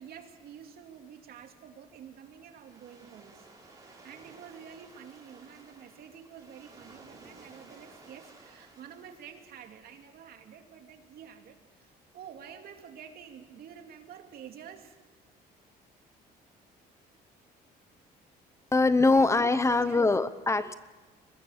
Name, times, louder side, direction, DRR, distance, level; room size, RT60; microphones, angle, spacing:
voice 1, 0.0-3.5 3.8-15.0 19.0-19.3 19.7-20.0, right 8 dB, 65° right, 5 dB, 2.6 m, -49 dB
Waves surf, 1.9-10.1, right 3 dB, 20° right, 5.7 m, -55 dB
voice 2, 18.7-20.7, left 3 dB, 15° left, 13 dB, 0.8 m, -23 dB
24.0 x 20.5 x 6.5 m, 1.2 s
cardioid pair, 110°, 17 cm